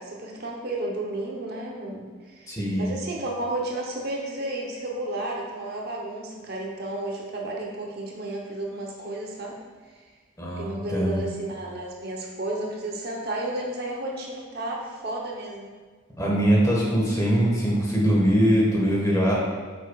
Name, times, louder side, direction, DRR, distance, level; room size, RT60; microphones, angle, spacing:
voice 1, 0.0-9.6 10.5-15.7, right 1 dB, 50° right, -1 dB, 0.9 m, -32 dB
voice 2, 2.5-2.9 10.4-11.2 16.2-19.3, equal, 15° left, -4 dB, 1.5 m, -22 dB
8.7 x 6.1 x 2.4 m, 1.4 s
head